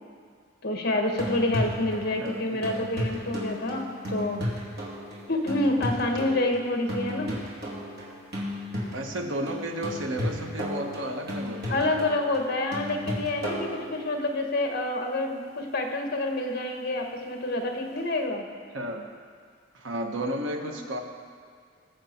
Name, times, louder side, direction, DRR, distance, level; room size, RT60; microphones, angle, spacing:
voice 1, 0.6-4.4 5.3-7.3 11.7-18.5 20.6-20.8, left 2 dB, 50° left, 3 dB, 1.4 m, -28 dB
sound 1, 1.0-14.4 18.0-18.1, left 1 dB, 55° right, 2.7 m, -34 dB
voice 2, 2.2-2.8 8.9-12.0 18.7-19.1 19.7-21.0, right 1 dB, 75° right, 3 dB, 1.3 m, -33 dB
21.0 x 7.0 x 4.5 m, 2.1 s
head